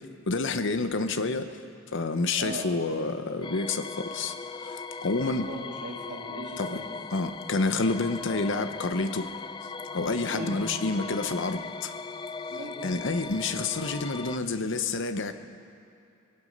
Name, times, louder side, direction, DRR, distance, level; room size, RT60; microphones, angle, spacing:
voice 1, 0.3-1.6 1.9-4.4 4.6-5.5 6.6-6.8 7.1-9.3 9.9-11.9 12.8-15.3, left 3 dB, 65° left, 9 dB, 0.9 m, -29 dB
sound 1, 3.4-14.4, left 4 dB, 25° left, 0.4 m, -39 dB
voice 2, 5.2-6.9 10.3-10.5 12.5-12.7, right 1 dB, 60° right, -3 dB, 3.1 m, -38 dB
22.5 x 11.5 x 5.4 m, 2.6 s
head